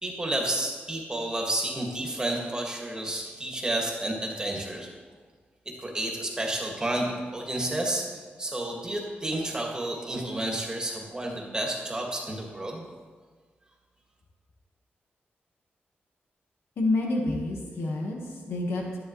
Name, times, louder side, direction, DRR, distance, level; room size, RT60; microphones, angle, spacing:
voice 1, 0.0-4.9 5.7-12.8, right 1 dB, 20° right, 0 dB, 1.9 m, -31 dB
voice 2, 16.8-19.0, left 2 dB, 85° left, 0 dB, 1.5 m, -28 dB
11.0 x 10.5 x 3.2 m, 1.5 s
wide cardioid pair, 120°, 4 cm